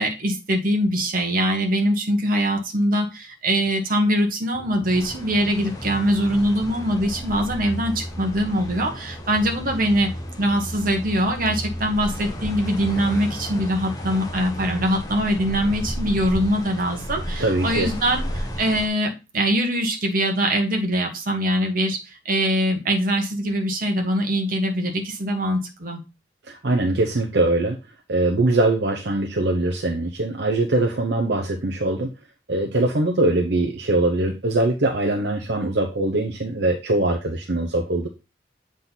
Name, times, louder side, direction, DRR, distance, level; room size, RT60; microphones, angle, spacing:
voice 1, 0.0-10.1 10.4-26.0, equal, 50° right, 3 dB, 1.3 m, -23 dB
sound 1, 4.5-18.2, equal, ahead, 0.7 m, -38 dB
sound 2, 4.9-18.9, equal, 20° left, 1.0 m, -34 dB
voice 2, 17.4-17.9 26.4-27.8 28.1-32.1 32.5-38.1, right 2 dB, 65° right, 2 dB, 0.8 m, -22 dB
7.5 x 3.8 x 4.0 m, 0.28 s
head